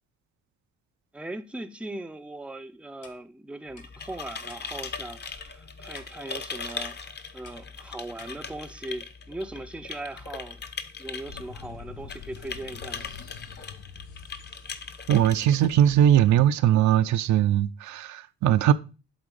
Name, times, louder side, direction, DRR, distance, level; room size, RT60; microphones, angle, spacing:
voice 1, 1.1-7.0 7.3-10.6 11.0-13.1, right 2 dB, 5° right, 0.5 m, -39 dB
Clock, 3.0-3.2 3.7-3.9 4.5-4.6 5.2-5.3 5.9-6.1 6.7-6.8 7.4-7.6 8.2-8.3, left 5 dB, 55° left, 1.5 m, -51 dB
sound 1, 3.7-16.4, left 5 dB, 35° left, 0.8 m, -40 dB
sound 2, 11.3-15.2, left 7 dB, 85° left, 0.8 m, -45 dB
voice 2, 15.1-18.7, right 11 dB, 75° right, 0.5 m, -20 dB
8.0 x 3.7 x 5.3 m
cardioid pair, 90°, 30 cm